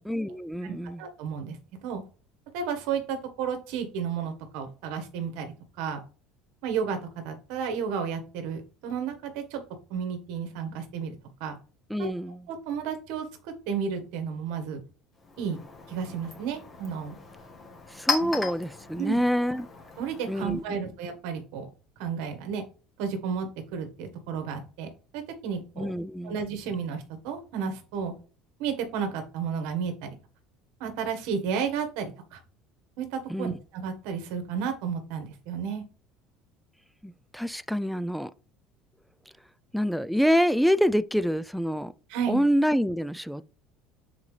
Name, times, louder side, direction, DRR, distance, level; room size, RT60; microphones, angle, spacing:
voice 1, 0.1-1.0 11.9-12.4 17.9-19.7 20.3-20.6 25.8-26.4 33.3-33.6 37.0-38.3 39.7-41.9 42.3-43.4, equal, ahead, 0.3 m, -26 dB
voice 2, 0.6-2.0 2.5-6.0 6.6-9.6 9.9-11.1 11.4-11.5 12.0-12.1 12.5-14.8 15.4-15.6 15.9-17.1 18.2-18.3 19.0-19.2 20.0-21.7 22.0-22.6 23.0-25.9 26.2-28.1 28.6-30.1 30.8-32.4 33.0-35.8 42.1-42.4, right 6 dB, 75° right, 1.4 m, -32 dB
Chink clink, 15.1-20.7, left 4 dB, 25° left, 1.7 m, -36 dB
7.0 x 4.1 x 3.3 m
supercardioid pair, 120°, 0 cm